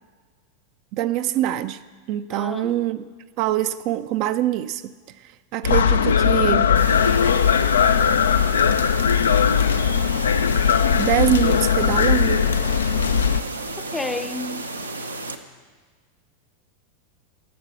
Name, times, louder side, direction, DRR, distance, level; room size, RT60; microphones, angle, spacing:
voice 1, 0.9-1.8 2.1-3.0 3.4-4.9 5.2-6.7 10.9-12.4, right 12 dB, 50° right, 0.4 m, -24 dB
voice 2, 2.3-2.8 13.8-14.7, left 2 dB, 10° left, 0.6 m, -31 dB
sound 1, 5.6-13.4, left 7 dB, 75° left, 0.4 m, -19 dB
sound 2, 6.8-15.4, right 2 dB, 90° right, 0.7 m, -33 dB
12.0 x 6.6 x 6.8 m
figure-of-eight pair, 90°, 0 cm